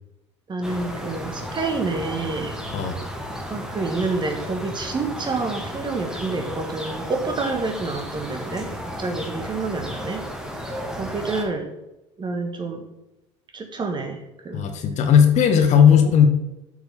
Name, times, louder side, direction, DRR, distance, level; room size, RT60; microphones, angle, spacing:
voice 1, 0.5-2.6 3.5-10.2 10.6-11.7 12.2-12.9 13.5-14.7 15.5-15.7, right 3 dB, 30° right, 4 dB, 1.4 m, -28 dB
sound 1, 0.6-11.4, equal, 5° right, 1.4 m, -33 dB
voice 2, 14.5-16.3, left 8 dB, 50° left, 7 dB, 1.0 m, -16 dB
7.9 x 6.5 x 3.5 m, 0.96 s
hypercardioid pair, 70°, 15 cm